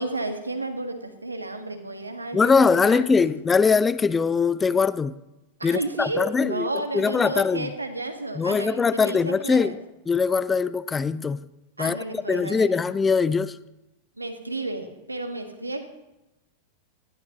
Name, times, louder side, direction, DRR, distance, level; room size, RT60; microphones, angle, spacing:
voice 1, 0.0-3.3 5.6-9.8 11.8-12.8 14.2-15.9, right 2 dB, 80° right, 1.7 m, -32 dB
voice 2, 2.3-5.1 5.6-7.7 8.3-9.8 10.1-11.5 11.8-13.6, left 5 dB, 15° left, 0.5 m, -22 dB
19.5 x 14.0 x 3.1 m
figure-of-eight pair, 90°, 0 cm